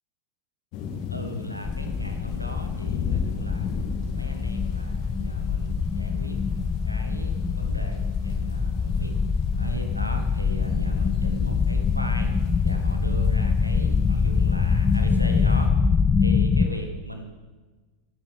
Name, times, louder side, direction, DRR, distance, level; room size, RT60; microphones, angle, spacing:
sound 1, 0.7-15.6, left 6 dB, 40° left, 1.9 m, -37 dB
voice 1, 1.1-3.7 4.1-9.1 9.6-12.3 12.6-15.7 16.2-17.2, equal, 90° right, 5 dB, 1.5 m, -37 dB
sound 2, 1.6-16.7, left 5 dB, 20° left, 0.6 m, -24 dB
16.5 x 10.5 x 3.6 m, 1.3 s
figure-of-eight pair, 90°, 0 cm